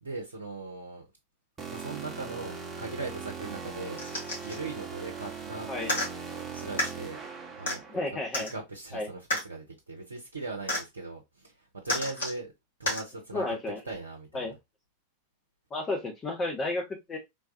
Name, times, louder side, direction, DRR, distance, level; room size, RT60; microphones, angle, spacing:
voice 1, 0.0-1.1 1.7-4.0 4.4-6.0 6.3-7.2 7.6-7.8 8.5-12.5 12.8-13.5 13.8-14.5, right 3 dB, 75° right, 0.6 m, -39 dB
sound 1, 1.6-8.1, right 5 dB, 20° right, 0.8 m, -40 dB
sound 2, 4.0-4.6 5.8-6.1 6.8-6.9 7.7-7.8 8.3-8.5 9.3-9.4 10.7-10.8 11.9-12.4 12.9-13.0 13.9-14.0, left 1 dB, 65° left, 1.5 m, -30 dB
voice 2, 7.9-8.5 8.9-9.1 13.3-13.8 14.3-14.5 15.7-17.2, left 2 dB, 20° left, 0.6 m, -32 dB
3.3 x 2.3 x 2.5 m
figure-of-eight pair, 90°, 0 cm